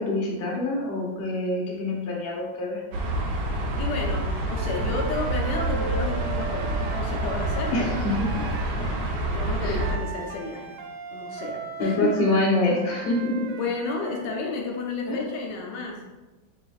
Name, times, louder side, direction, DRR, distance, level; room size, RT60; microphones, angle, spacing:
voice 1, 0.0-2.8 7.7-8.5 9.6-9.8 11.8-13.5 15.1-15.2, left 2 dB, 45° left, -3 dB, 0.8 m, -26 dB
sound 1, 2.9-10.0, right 1 dB, 70° right, 1.1 m, -27 dB
voice 2, 3.8-8.0 9.3-10.8 11.1-12.1 13.5-16.0, left 3 dB, 75° left, -1 dB, 1.2 m, -32 dB
sound 2, 4.5-8.8 9.7-14.4, right 4 dB, 90° right, 1.4 m, -38 dB
5.0 x 3.3 x 2.3 m, 1.1 s
omnidirectional pair, 2.1 m